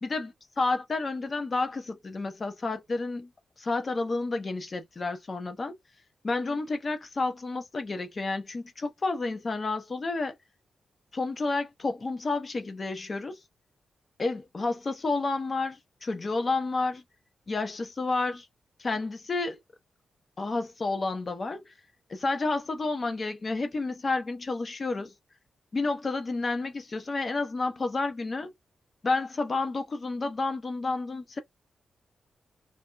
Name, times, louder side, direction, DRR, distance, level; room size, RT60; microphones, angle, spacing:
voice 1, 0.0-3.3 3.6-5.8 6.2-10.4 11.1-13.4 14.2-17.0 17.5-18.5 18.8-19.6 20.4-21.7 22.1-25.1 25.7-28.5 29.0-31.4, left 3 dB, 35° left, 0.8 m, -30 dB
3.3 x 2.3 x 2.4 m
wide cardioid pair, 150°, 0 cm